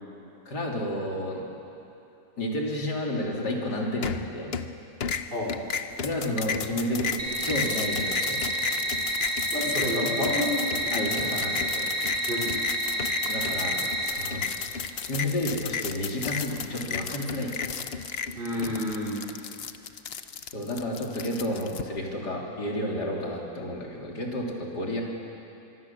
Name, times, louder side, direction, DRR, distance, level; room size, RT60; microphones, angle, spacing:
voice 1, 0.5-1.5 2.4-4.5 6.0-8.4 10.9-11.9 13.3-17.5 18.6-18.9 20.5-25.0, left 1 dB, 80° left, -2 dB, 4.0 m, -31 dB
sound 1, 4.0-4.7 5.0-21.8, left 6 dB, 45° left, 0.9 m, -33 dB
sound 2, 7.2-14.0, right 1 dB, 55° right, 7.1 m, -29 dB
voice 2, 9.5-11.3 12.3-12.5 18.3-19.2, left 1 dB, 30° right, -3 dB, 4.8 m, -30 dB
25.5 x 23.5 x 7.3 m, 2.8 s
omnidirectional pair, 1.7 m